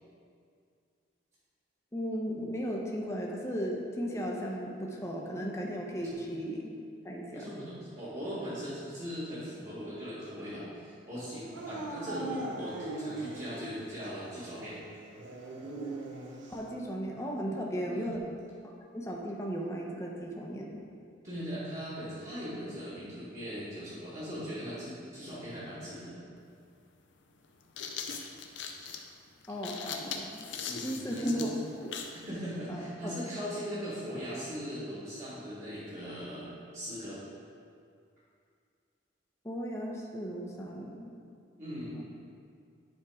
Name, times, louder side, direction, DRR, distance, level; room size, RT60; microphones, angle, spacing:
voice 1, 1.9-6.7 7.0-7.4 16.5-18.2 18.9-20.8 29.5-30.5 30.8-31.5 31.8-31.9 32.7-33.1 39.4-41.1 41.9-42.0, equal, 15° left, -2 dB, 0.7 m, -36 dB
voice 2, 7.3-14.8 17.9-18.1 21.2-26.2 30.6-31.5 32.3-37.2 41.6-41.9, equal, 40° right, -11 dB, 1.8 m, -39 dB
Dog / Siren, 11.5-13.7 14.0-14.1 15.1-16.7, right 2 dB, 70° right, 0.8 m, -39 dB
sound 1, 26.4-26.5 27.4-32.2, left 6 dB, 70° left, 0.6 m, -40 dB
9.4 x 3.6 x 4.9 m, 2.3 s
head